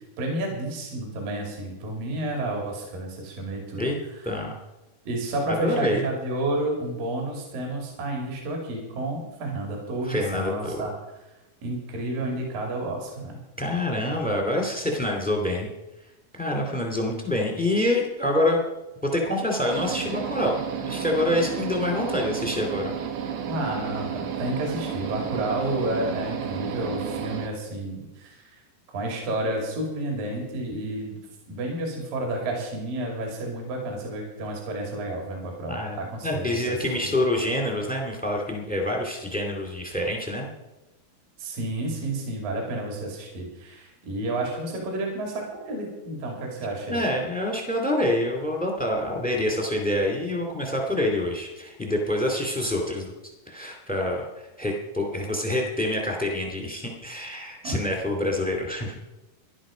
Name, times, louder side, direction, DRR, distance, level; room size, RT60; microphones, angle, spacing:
voice 1, 0.2-3.9 4.2-4.3 5.1-10.9 11.6-13.4 23.5-28.6 28.9-31.2 31.5-37.0 41.4-47.0 57.6-57.8, right 1 dB, 60° right, 1 dB, 4.2 m, -31 dB
voice 2, 5.5-6.1 10.0-10.8 13.6-15.7 16.4-18.6 19.0-22.9 35.7-40.5 46.9-53.1 53.5-59.0, left 1 dB, 5° left, 1 dB, 1.0 m, -26 dB
sound 1, 19.7-27.5, right 8 dB, 75° right, 3.3 m, -32 dB
14.5 x 11.5 x 5.1 m, 1.0 s
omnidirectional pair, 4.7 m